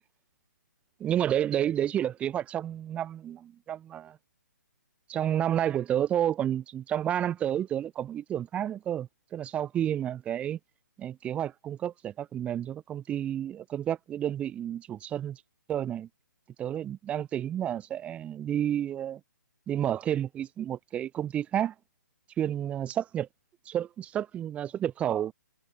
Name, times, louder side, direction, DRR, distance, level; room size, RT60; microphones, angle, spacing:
voice 1, 1.0-4.2 5.1-10.6 11.0-15.4 15.7-16.1 16.6-19.2 19.7-21.7 22.4-23.3 23.7-25.3, right 10 dB, 10° right, 0.6 m, -30 dB
hypercardioid pair, 140°, 10 cm